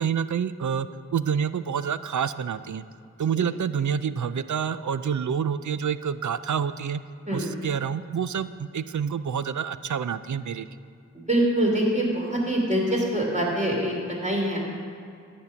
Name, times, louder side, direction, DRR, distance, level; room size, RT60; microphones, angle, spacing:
voice 1, 0.0-2.8 3.2-7.0 7.3-10.7, right 7 dB, 70° right, 14 dB, 0.5 m, -28 dB
voice 2, 11.3-14.6, right 1 dB, 25° right, -3 dB, 3.1 m, -24 dB
11.0 x 5.3 x 8.5 m, 2.4 s
wide cardioid pair, 50°, 31 cm